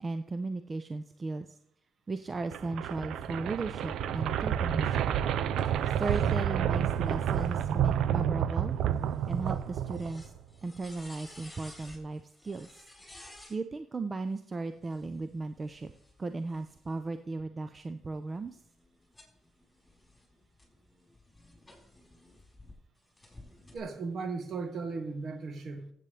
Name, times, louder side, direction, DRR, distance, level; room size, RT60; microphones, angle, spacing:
voice 1, 0.0-1.5 2.1-5.1 6.0-8.8 9.3-10.2 10.6-12.8 13.5-15.9 16.2-18.6, right 3 dB, 35° right, 9 dB, 0.6 m, -36 dB
sound 1, 2.4-10.4, right 9 dB, 80° right, 0.5 m, -29 dB
sound 2, 5.6-13.6 14.7-17.1 17.7-22.7 23.2-23.8, left 1 dB, 15° left, 4.6 m, -55 dB
voice 2, 23.7-25.9, right 4 dB, 60° right, 7 dB, 1.6 m, -36 dB
14.5 x 8.3 x 3.3 m, 0.71 s
cardioid pair, 80°, 0 cm